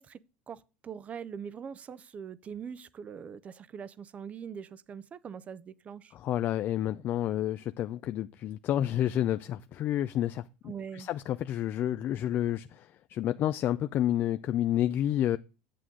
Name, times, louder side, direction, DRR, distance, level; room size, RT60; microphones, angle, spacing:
voice 1, 0.0-6.1 10.6-11.1, right 7 dB, 20° right, 0.5 m, -42 dB
voice 2, 6.2-10.4 10.9-15.4, left 12 dB, 35° left, 0.3 m, -29 dB
8.3 x 7.7 x 3.8 m
supercardioid pair, 150°, 6 cm